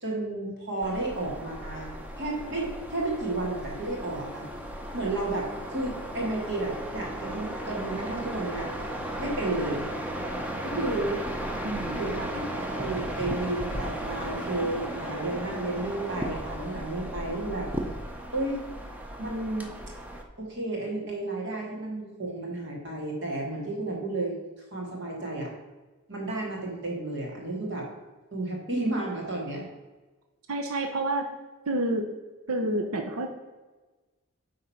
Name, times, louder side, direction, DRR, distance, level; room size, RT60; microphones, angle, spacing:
voice 1, 0.0-4.4 4.9-8.7 9.2-9.9 10.6-11.2 11.9-17.7 18.3-18.6 19.2-19.7 20.4-24.4 24.7-25.5 26.1-27.9 28.3-29.7, right 2 dB, 55° right, -1 dB, 2.3 m, -32 dB
sound 1, 0.8-20.2, equal, 5° right, 0.7 m, -35 dB
voice 2, 11.6-12.0 30.5-31.3 31.7-32.1 32.5-33.3, right 1 dB, 90° right, 4 dB, 0.8 m, -28 dB
9.4 x 3.8 x 5.7 m, 1.2 s
head